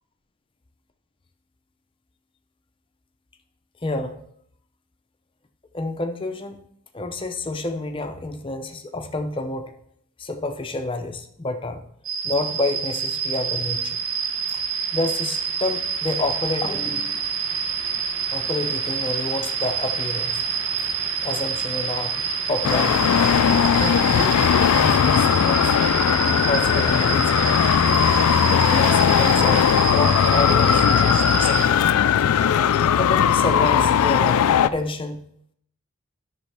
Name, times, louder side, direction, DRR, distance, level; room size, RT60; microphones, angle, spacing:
voice 1, 3.8-4.2 5.7-6.6 6.9-9.7 10.2-11.9 12.2-14.0 14.5-14.6 14.9-17.2 18.3-20.4 21.2-22.2 22.5-23.2 23.8-25.8 26.5-27.6 28.4-31.8 32.9-35.2, left 2 dB, 25° left, 6 dB, 0.6 m, -29 dB
sound 1, 12.0-31.6, right 6 dB, 60° right, 0.9 m, -27 dB
Traffic noise roadway noise, 22.6-34.7, left 8 dB, 80° left, 0.3 m, -18 dB
10.5 x 6.2 x 3.4 m, 0.70 s
head